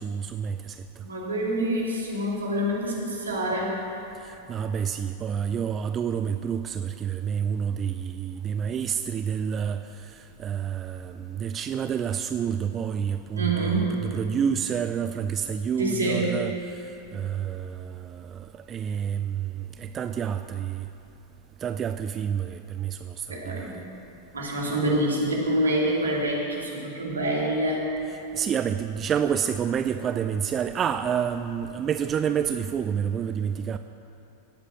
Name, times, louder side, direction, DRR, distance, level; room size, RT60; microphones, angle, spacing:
voice 1, 0.0-1.0 4.2-13.7 14.1-20.9 21.6-23.8 28.3-33.8, right 8 dB, 25° right, 10 dB, 0.4 m, -29 dB
voice 2, 1.0-3.7 13.3-14.0 15.8-16.4 23.3-23.8 24.3-27.8, right 1 dB, 75° right, -2 dB, 2.9 m, -26 dB
17.5 x 8.2 x 6.5 m, 2.8 s
figure-of-eight pair, 90°, 0 cm